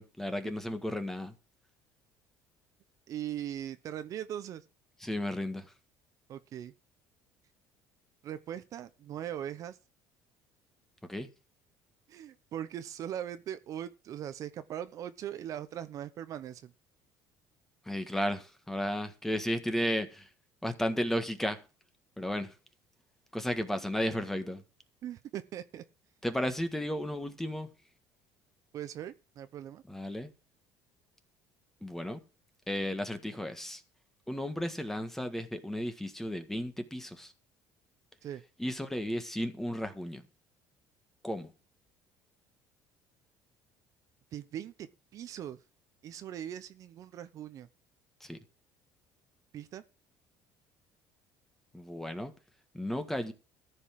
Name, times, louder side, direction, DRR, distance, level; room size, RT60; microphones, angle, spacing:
voice 1, 0.0-1.3 5.0-5.6 11.1-11.3 17.9-20.3 20.6-21.6 22.2-22.5 23.3-24.6 26.2-27.7 29.9-30.3 31.8-32.2 32.7-33.8 34.3-37.3 38.6-40.2 41.2-41.5 48.2-48.4 51.7-52.3 52.7-53.3, equal, 5° left, 1.6 m, -34 dB
voice 2, 3.1-4.6 6.3-6.7 8.2-9.8 12.1-16.7 25.0-25.8 28.7-29.8 38.2-38.4 44.3-45.6 46.0-47.7 49.5-49.8, right 10 dB, 50° right, 0.9 m, -40 dB
14.0 x 5.4 x 7.6 m
cardioid pair, 130°, 7 cm